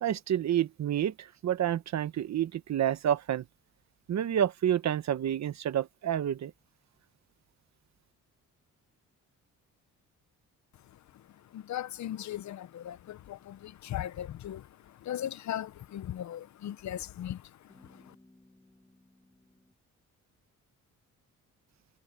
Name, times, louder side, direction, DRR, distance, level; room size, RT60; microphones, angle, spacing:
voice 1, 0.0-3.4 4.1-6.5, right 10 dB, 60° right, 1.1 m, -29 dB
voice 2, 10.7-18.2, left 11 dB, 65° left, 0.7 m, -39 dB
sound 1, 16.0-16.3 17.7-19.7, left 1 dB, 10° left, 7.8 m, -61 dB
cardioid pair, 130°, 32 cm